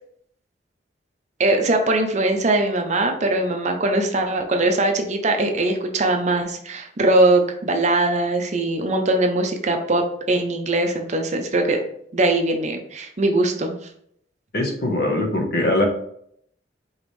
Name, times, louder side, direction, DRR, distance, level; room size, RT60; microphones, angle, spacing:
voice 1, 1.4-11.8 12.1-13.7, right 2 dB, 40° right, 4 dB, 0.6 m, -21 dB
voice 2, 14.5-15.8, left 1 dB, 60° left, 2 dB, 1.1 m, -21 dB
5.1 x 3.1 x 3.2 m, 0.68 s
head